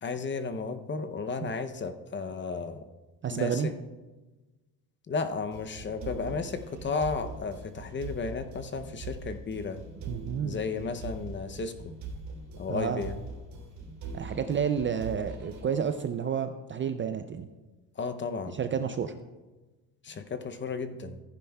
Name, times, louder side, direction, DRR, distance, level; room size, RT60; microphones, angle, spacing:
voice 1, 0.0-2.9 3.3-3.6 5.1-9.8 10.4-11.9 12.6-13.2 18.0-18.6 20.0-21.2, left 4 dB, 25° left, 8 dB, 0.6 m, -33 dB
voice 2, 3.2-3.7 10.1-10.6 12.7-13.0 14.1-17.5 18.5-19.1, right 7 dB, 30° right, 9 dB, 0.4 m, -30 dB
sound 1, 5.5-15.6, right 3 dB, 70° right, 3.2 m, -42 dB
14.5 x 9.8 x 2.3 m, 1.2 s
cardioid pair, 120°, 43 cm